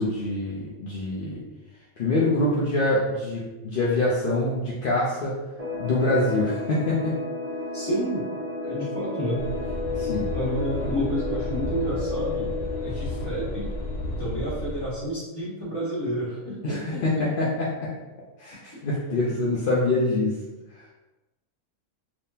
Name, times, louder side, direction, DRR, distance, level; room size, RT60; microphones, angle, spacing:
voice 1, 0.0-1.4 2.0-5.3 5.8-7.2 9.9-10.3 12.9-13.0 16.6-17.9 18.4-20.4 20.7-20.9, left 2 dB, 60° left, -6 dB, 0.6 m, -25 dB
sound 1, 5.6-14.9, left 3 dB, 40° right, 0.6 m, -33 dB
voice 2, 7.7-8.2 8.6-9.4 10.3-12.5 12.8-13.7 14.2-17.0, equal, 15° left, -9 dB, 1.4 m, -30 dB
sound 2, 9.4-14.8, left 1 dB, 90° left, 1.1 m, -33 dB
3.5 x 2.9 x 2.8 m, 1.1 s
omnidirectional pair, 1.5 m